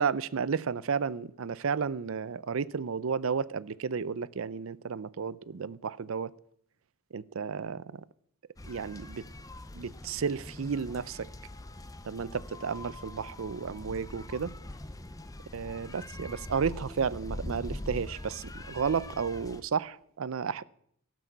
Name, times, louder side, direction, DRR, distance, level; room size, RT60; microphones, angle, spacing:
voice 1, 0.0-6.3 7.1-8.0 8.7-9.3 9.7-11.3 12.0-14.5 15.5-20.6, right 6 dB, 75° right, 0.5 m, -32 dB
sound 1, 8.6-19.6, left 1 dB, 15° left, 0.6 m, -43 dB
17.0 x 6.2 x 8.0 m
head